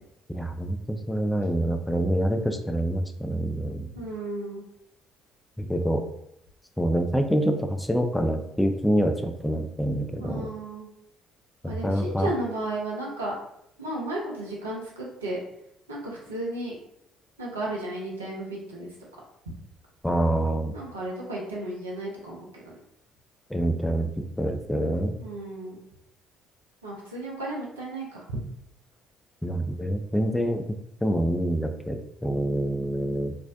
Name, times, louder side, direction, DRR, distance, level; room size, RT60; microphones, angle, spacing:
voice 1, 0.3-3.9 5.6-6.0 6.8-10.5 11.6-12.3 20.0-20.7 23.5-24.1 24.4-25.2 29.4-30.6 31.0-33.4, right 1 dB, 5° left, 5 dB, 0.4 m, -26 dB
voice 2, 3.9-4.6 10.2-10.9 11.7-13.3 13.8-15.4 15.9-16.8 17.4-18.9 20.7-22.8 25.2-25.8 26.8-28.4, right 1 dB, 90° right, -4 dB, 0.5 m, -34 dB
2.5 x 2.1 x 2.4 m, 0.76 s
hypercardioid pair, 50°, 0 cm